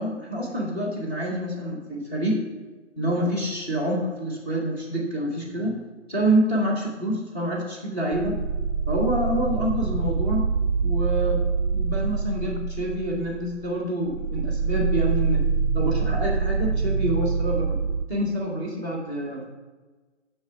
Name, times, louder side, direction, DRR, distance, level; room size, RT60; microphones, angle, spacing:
voice 1, 0.0-2.4 3.0-5.8 6.1-8.4 8.9-10.5 10.8-11.5 11.7-15.4 15.7-17.8 18.1-19.5, right 1 dB, 10° left, -5 dB, 0.7 m, -27 dB
sound 1, 8.1-13.7 14.0-18.0, right 5 dB, 55° right, 0.5 m, -25 dB
6.2 x 3.2 x 5.7 m, 1.3 s
figure-of-eight pair, 150°, 36 cm